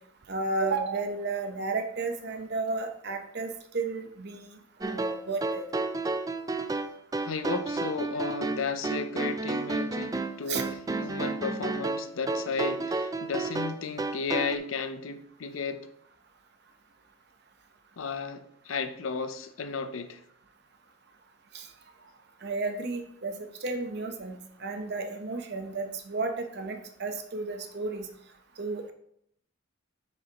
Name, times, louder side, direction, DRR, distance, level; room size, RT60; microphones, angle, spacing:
voice 1, 0.3-5.6 10.4-10.6 21.5-21.7 22.4-28.1 28.6-28.9, right 3 dB, 55° right, 0.9 m, -33 dB
sound 1, 4.8-14.6, right 3 dB, 20° right, 0.3 m, -31 dB
voice 2, 7.2-15.9 18.0-20.2, left 4 dB, 85° left, 0.6 m, -34 dB
8.0 x 6.7 x 2.9 m
head